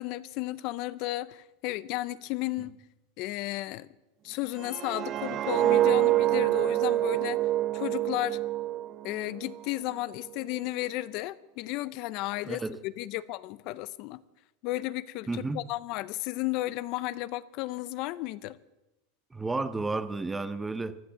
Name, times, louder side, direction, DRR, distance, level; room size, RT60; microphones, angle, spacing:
voice 1, 0.0-2.8 3.2-3.9 4.2-7.4 7.7-8.4 9.0-14.2 14.6-18.6, left 17 dB, 55° left, 0.5 m, -33 dB
sound 1, 4.6-9.6 10.0-10.3, right 14 dB, 35° right, 0.5 m, -26 dB
voice 2, 12.4-12.8 15.3-15.6 19.3-21.0, right 3 dB, 10° right, 0.8 m, -32 dB
15.5 x 11.0 x 7.5 m
supercardioid pair, 130°, 0 cm